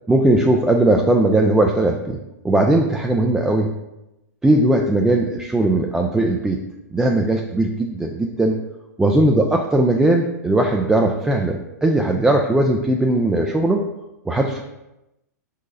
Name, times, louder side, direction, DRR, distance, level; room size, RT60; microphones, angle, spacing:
voice 1, 0.1-2.2 2.4-3.7 4.4-6.6 6.9-8.6 9.0-13.8 14.3-14.6, right 1 dB, 5° right, 0 dB, 0.3 m, -18 dB
5.2 x 4.0 x 2.5 m, 0.92 s
hypercardioid pair, 115°, 10 cm